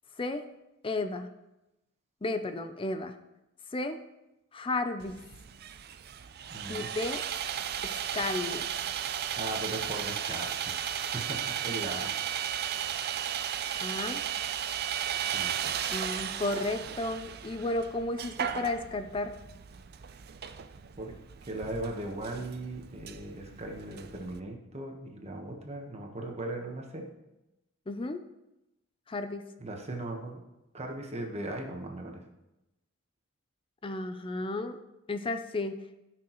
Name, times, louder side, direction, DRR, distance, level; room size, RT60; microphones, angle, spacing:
voice 1, 0.8-1.3 2.2-3.1 3.7-4.0 4.5-5.2 6.7-7.2 7.8-8.7 13.8-14.2 15.9-19.4 27.9-28.2 29.1-29.4 33.8-34.8 35.1-35.8, left 2 dB, 25° left, 9 dB, 0.5 m, -33 dB
Sawing, 5.0-24.4, right 9 dB, 50° right, 0.5 m, -35 dB
voice 2, 6.5-6.9 9.4-12.1 15.3-15.5 21.0-21.1 21.4-27.1 29.6-30.4 30.7-32.2, right 1 dB, 30° right, 2 dB, 1.2 m, -38 dB
15.0 x 6.2 x 3.0 m, 0.94 s
head